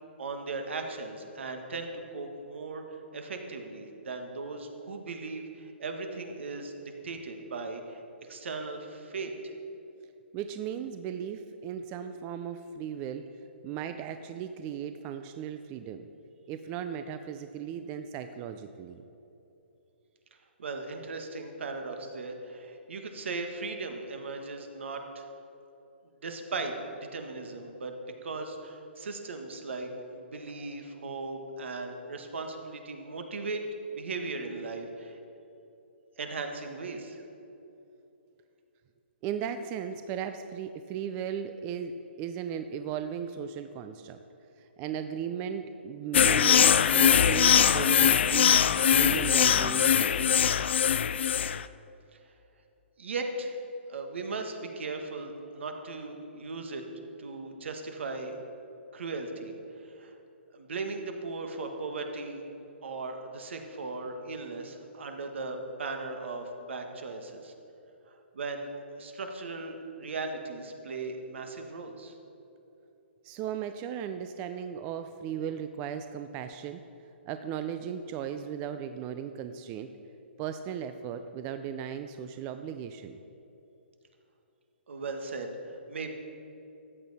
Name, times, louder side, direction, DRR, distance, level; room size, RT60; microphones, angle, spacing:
voice 1, 0.2-6.7 7.0-9.5 20.6-25.3 26.2-26.8 27.1-27.9 28.2-33.6 33.9-35.2 36.2-37.2 52.1-52.2 53.0-53.6 53.9-56.8 57.2-58.3 58.9-59.5 59.8-60.1 60.5-62.4 62.8-67.5 68.3-72.1 84.9-86.1, right 3 dB, 70° right, 5 dB, 1.5 m, -37 dB
voice 2, 10.3-16.1 16.5-19.0 39.2-44.2 44.6-50.6 73.2-76.8 77.3-79.9 80.4-83.2, right 8 dB, 25° right, 8 dB, 0.3 m, -37 dB
sound 1, 46.1-51.6, left 8 dB, 65° left, 0.4 m, -22 dB
14.0 x 8.7 x 4.1 m, 2.9 s
hypercardioid pair, 150°, 7 cm